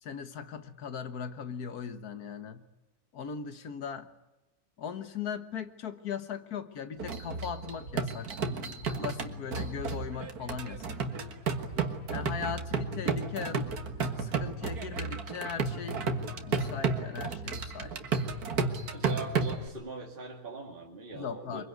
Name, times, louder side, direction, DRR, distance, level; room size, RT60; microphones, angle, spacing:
voice 1, 0.0-2.7 3.1-4.1 4.8-11.0 12.1-18.0 21.1-21.6, left 7 dB, 90° left, 10 dB, 1.8 m, -39 dB
sound 1, 7.0-19.7, right 4 dB, 85° right, 2.1 m, -33 dB
voice 2, 18.9-21.6, right 3 dB, 35° right, 0 dB, 2.5 m, -41 dB
23.5 x 22.5 x 9.5 m, 1.0 s
omnidirectional pair, 1.6 m